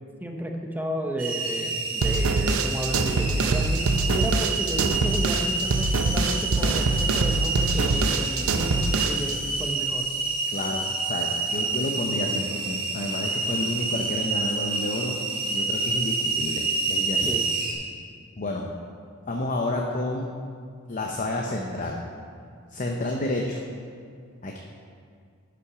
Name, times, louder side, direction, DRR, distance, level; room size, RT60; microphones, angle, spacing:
voice 1, 0.2-10.1 17.2-17.4, right 1 dB, 10° right, 2 dB, 0.7 m, -32 dB
sound 1, 1.2-17.7, right 3 dB, 45° right, 1.8 m, -28 dB
sound 2, 2.0-9.3, right 3 dB, 75° right, 0.5 m, -24 dB
voice 2, 10.5-15.2 15.5-17.4 18.4-18.7 19.3-20.3 20.9-22.1 22.7-23.6 24.4-24.6, left 1 dB, 40° left, 1 dB, 0.7 m, -30 dB
11.0 x 5.8 x 5.0 m, 2.2 s
head